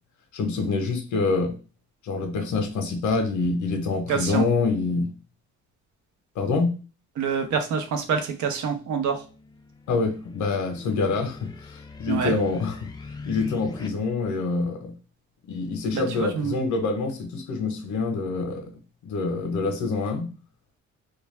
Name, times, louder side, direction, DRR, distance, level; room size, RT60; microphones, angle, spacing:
voice 1, 0.3-1.6 2.0-5.1 6.4-6.7 9.9-12.9 13.3-14.9 15.5-18.7 19.0-20.3, left 3 dB, 75° left, 0.8 m, -26 dB
voice 2, 4.1-4.4 7.2-9.2 12.1-12.3 15.9-16.6, right 6 dB, 70° right, 0.8 m, -26 dB
sound 1, 8.9-13.9, left 3 dB, 15° left, 0.4 m, -42 dB
2.5 x 2.2 x 3.1 m
cardioid pair, 90°, 30 cm